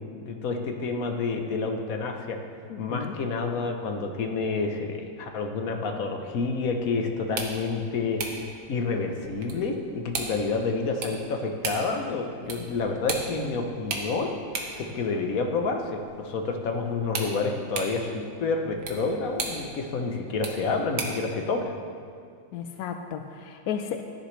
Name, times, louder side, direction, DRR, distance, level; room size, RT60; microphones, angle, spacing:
voice 1, 0.2-2.4 2.8-8.2 8.7-14.3 14.8-21.7, left 4 dB, 55° left, 4 dB, 1.2 m, -29 dB
voice 2, 2.7-3.1 22.5-24.0, left 8 dB, 75° left, 6 dB, 0.8 m, -34 dB
sound 1, 7.2-21.3, right 4 dB, 75° right, 2.0 m, -38 dB
16.0 x 10.5 x 3.3 m, 2.2 s
omnidirectional pair, 2.1 m